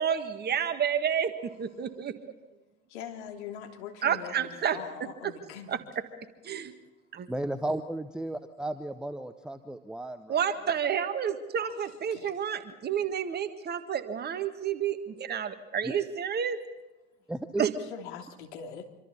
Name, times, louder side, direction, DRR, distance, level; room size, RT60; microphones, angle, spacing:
voice 1, 0.0-1.3 1.6-2.1 4.0-4.8 5.7-6.0 6.4-6.7 7.1-7.3 10.3-16.6 17.6-17.7, right 8 dB, 25° right, 9 dB, 1.7 m, -30 dB
voice 2, 2.9-5.8 11.6-11.8 12.1-12.3 17.9-18.9, left 7 dB, 55° left, 3 dB, 3.1 m, -42 dB
voice 3, 7.3-10.4 15.8-15.9 17.3-17.6, right 1 dB, ahead, 8 dB, 0.7 m, -34 dB
26.0 x 26.0 x 4.2 m, 1.1 s
figure-of-eight pair, 85°, 40 cm